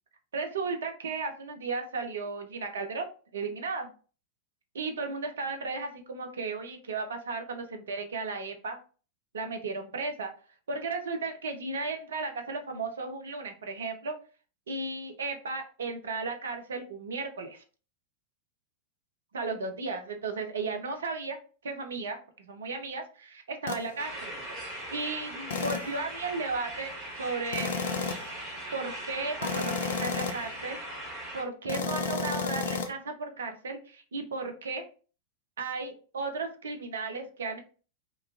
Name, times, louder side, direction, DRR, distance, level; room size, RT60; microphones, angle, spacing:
voice 1, 0.3-3.9 4.8-8.8 9.3-10.3 10.7-14.2 14.7-17.6 19.3-21.4 21.6-24.3 24.9-27.7 28.7-30.8 31.3-34.8 35.6-37.6, right 4 dB, 65° right, 5 dB, 0.5 m, -35 dB
sound 1, 23.7-23.9 25.5-26.0 27.5-28.4 29.4-30.5 31.7-32.9, left 5 dB, 60° left, 0.4 m, -32 dB
sound 2, 24.0-31.4, right 1 dB, 40° right, 1.4 m, -40 dB
2.9 x 2.3 x 2.3 m, 0.37 s
figure-of-eight pair, 90°, 0 cm